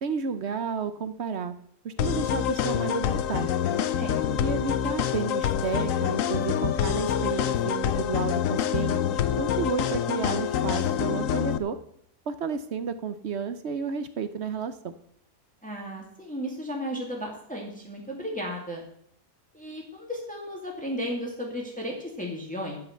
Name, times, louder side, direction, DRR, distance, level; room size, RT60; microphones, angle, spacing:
voice 1, 0.0-1.6 1.8-3.5 4.4-9.0 9.4-11.8 12.3-14.9, right 6 dB, 55° right, 11 dB, 0.9 m, -32 dB
sound 1, 2.0-11.6, left 9 dB, 65° left, 0.9 m, -26 dB
voice 2, 4.0-4.5 15.6-18.8 19.5-22.8, equal, 5° left, -1 dB, 2.3 m, -34 dB
13.0 x 5.8 x 7.8 m, 0.68 s
omnidirectional pair, 1.7 m